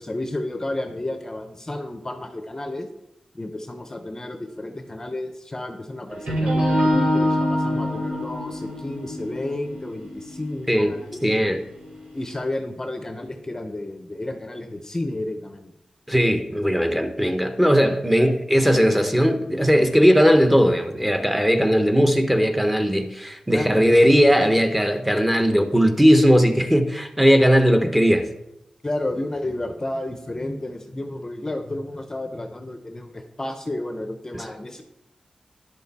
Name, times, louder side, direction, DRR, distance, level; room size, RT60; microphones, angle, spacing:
voice 1, 0.0-2.9 3.3-11.4 12.1-15.7 23.5-23.9 28.8-34.8, left 1 dB, 25° left, 6 dB, 0.7 m, -31 dB
sound 1, 6.1-12.0, left 1 dB, 85° right, 3.6 m, -25 dB
voice 2, 11.2-11.6 16.1-28.3 34.3-34.5, equal, 5° right, 6 dB, 1.0 m, -18 dB
10.0 x 6.5 x 4.2 m, 0.87 s
wide cardioid pair, 90°, 2 cm